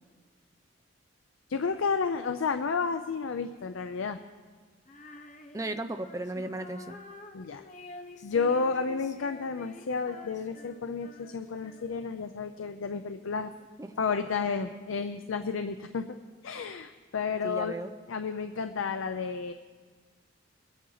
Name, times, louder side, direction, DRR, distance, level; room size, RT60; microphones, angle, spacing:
voice 1, 1.5-4.2 7.3-7.6 8.2-13.5 14.0-16.1 16.4-17.7 18.1-19.5, left 5 dB, 90° left, 9 dB, 0.5 m, -31 dB
Female singing, 4.9-12.2, left 2 dB, 35° left, 0.8 m, -49 dB
voice 2, 5.5-7.0 13.8-14.0 17.4-17.9, right 2 dB, 15° right, 8 dB, 0.4 m, -35 dB
22.0 x 9.4 x 4.0 m, 1.5 s
head